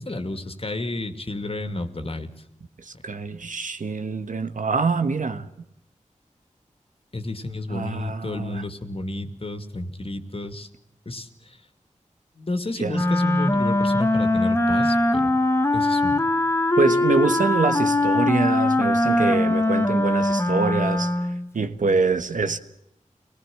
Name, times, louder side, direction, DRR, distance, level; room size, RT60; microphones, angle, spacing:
voice 1, 0.0-2.3 7.1-10.7 11.1-11.6 12.4-15.4 15.7-16.2, left 2 dB, 45° left, 2.4 m, -31 dB
voice 2, 2.8-5.5 7.7-8.6 12.8-13.0 16.8-22.6, right 4 dB, 80° right, 1.3 m, -25 dB
Wind instrument woodwind instrument, 12.9-21.5, left 1 dB, 20° left, 1.6 m, -21 dB
24.0 x 18.5 x 7.7 m
cardioid pair, 45°, 13 cm